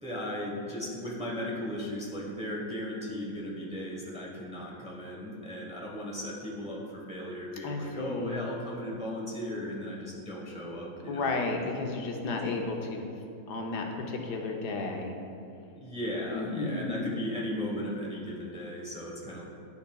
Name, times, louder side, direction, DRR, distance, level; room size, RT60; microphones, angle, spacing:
voice 1, 0.0-11.3 12.4-12.6 15.7-19.4, equal, 5° right, -4 dB, 0.8 m, -36 dB
voice 2, 7.6-8.5 11.0-13.0 13.5-15.2 16.3-17.1, left 3 dB, 85° left, 2 dB, 1.3 m, -33 dB
10.5 x 5.6 x 2.3 m, 2.6 s
omnidirectional pair, 1.7 m